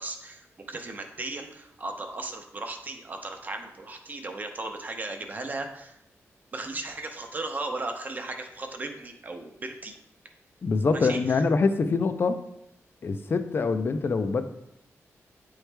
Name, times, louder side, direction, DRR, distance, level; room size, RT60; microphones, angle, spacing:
voice 1, 0.0-6.0 6.5-9.9 10.9-11.4, right 2 dB, 35° right, 5 dB, 0.7 m, -36 dB
voice 2, 10.6-12.4 13.0-14.4, left 4 dB, 45° left, 9 dB, 0.5 m, -24 dB
8.9 x 3.2 x 3.3 m, 0.79 s
wide cardioid pair, 135°, 5 cm